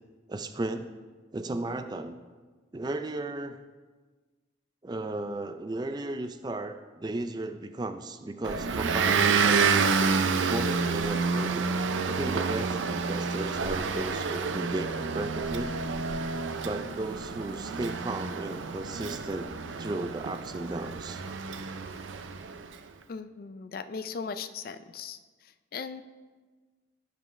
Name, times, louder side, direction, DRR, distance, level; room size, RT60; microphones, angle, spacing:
voice 1, 0.3-0.9 1.3-2.2 2.7-3.6 4.8-9.9 10.5-15.8 16.6-19.5 19.8-21.2, right 2 dB, 20° right, 8 dB, 0.3 m, -35 dB
Motor vehicle (road) / Engine, 8.4-22.7, right 5 dB, 90° right, 0.5 m, -29 dB
voice 2, 23.1-25.2 25.7-26.0, left 5 dB, 50° left, 11 dB, 0.4 m, -38 dB
15.0 x 5.4 x 3.2 m, 1.4 s
head